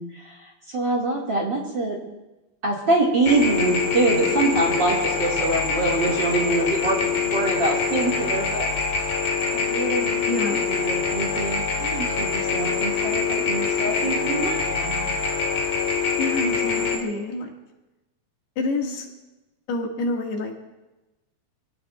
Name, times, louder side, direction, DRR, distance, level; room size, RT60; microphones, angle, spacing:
voice 1, 0.0-2.0 2.6-8.7 9.5-15.2, right 2 dB, 35° right, -3 dB, 2.2 m, -25 dB
sound 1, 3.2-17.0, left 5 dB, 65° left, 3.4 m, -24 dB
voice 2, 10.3-10.6 16.2-17.5 18.6-19.1 19.7-20.5, left 2 dB, 90° left, 0 dB, 4.1 m, -27 dB
27.0 x 17.0 x 2.5 m, 1.0 s
omnidirectional pair, 4.5 m